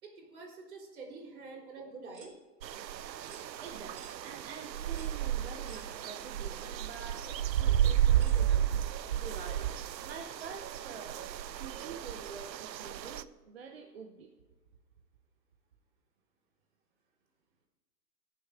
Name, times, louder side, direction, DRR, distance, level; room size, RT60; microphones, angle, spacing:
voice 1, 0.0-2.3, right 3 dB, 55° right, -1 dB, 3.7 m, -47 dB
sound 1, 2.1-2.4 3.2-3.5 4.0-4.2 4.9-5.2 5.7-5.9 6.7-6.8 8.2-8.4, right 5 dB, 70° right, 3.5 m, -53 dB
sound 2, 2.6-13.2, right 10 dB, 90° right, 0.7 m, -32 dB
voice 2, 3.6-8.8 9.2-9.7 10.0-11.2 11.6-14.3, right 5 dB, 40° right, 2 dB, 0.8 m, -47 dB
19.0 x 7.1 x 3.6 m, 1.2 s
hypercardioid pair, 165°, 50 cm